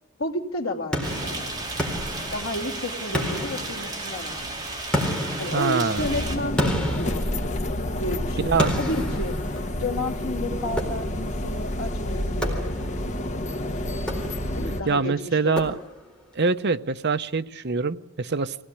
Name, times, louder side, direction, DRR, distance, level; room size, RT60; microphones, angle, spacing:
voice 1, 0.2-1.5 2.3-4.6 5.4-7.3 8.0-9.3 9.8-12.6 14.5-15.7, left 1 dB, 80° left, 4 dB, 2.7 m, -31 dB
sound 1, 0.9-2.7 3.1-4.3 4.9-8.0 8.6-10.0 10.8-11.4 12.4-13.1 13.9-14.7 15.6-16.2, equal, 5° left, 4.2 m, -31 dB
sound 2, 1.0-6.4, right 2 dB, 20° right, 4.2 m, -33 dB
voice 2, 5.4-6.1 8.4-8.7 14.9-15.7 16.3-18.6, right 4 dB, 55° right, 11 dB, 0.8 m, -24 dB
sound 3, 6.0-14.8, left 1 dB, 35° left, 1.5 m, -29 dB
24.0 x 17.5 x 9.9 m, 0.85 s
head